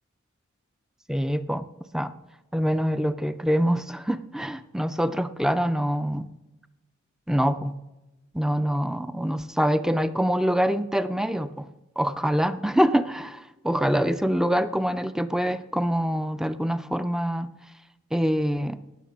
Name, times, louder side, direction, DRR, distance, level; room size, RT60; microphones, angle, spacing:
voice 1, 1.1-1.7 1.9-2.1 2.5-6.3 7.3-7.7 8.3-11.7 12.0-17.5 18.1-18.8, equal, ahead, 12 dB, 0.3 m, -25 dB
18.5 x 6.4 x 6.1 m, 1.0 s
head